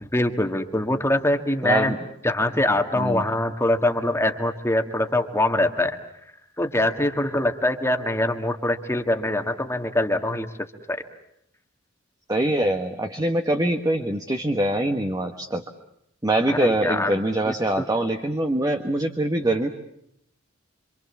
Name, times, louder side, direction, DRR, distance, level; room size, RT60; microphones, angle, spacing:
voice 1, 0.0-1.9 2.2-6.0 6.6-10.5 10.9-11.0 16.5-17.1 17.5-17.6, left 1 dB, 15° left, 6 dB, 1.9 m, -23 dB
voice 2, 1.6-2.0 2.9-3.2 12.3-15.6 16.2-19.7, right 1 dB, 20° right, 5 dB, 1.4 m, -23 dB
27.0 x 26.0 x 7.2 m, 0.75 s
head